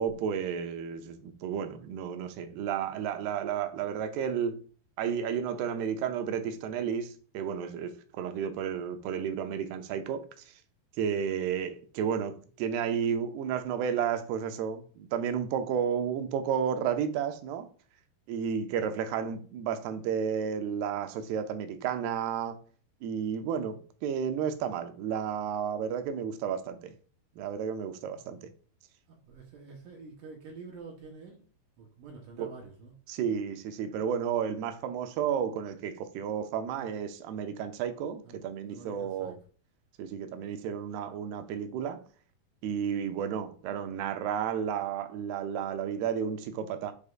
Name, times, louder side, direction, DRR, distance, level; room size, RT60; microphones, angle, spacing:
voice 1, 0.0-4.6 5.0-10.5 11.0-17.7 18.3-22.6 23.0-26.9 27.4-28.5 32.4-32.5 33.1-39.4 40.0-42.0 42.6-46.9, right 8 dB, 90° right, 2.7 m, -32 dB
voice 2, 28.2-28.5 29.1-31.4 31.8-33.0 36.7-36.9 38.2-38.4 38.7-39.4, right 4 dB, 65° right, 2.5 m, -48 dB
8.1 x 5.0 x 2.5 m
omnidirectional pair, 4.5 m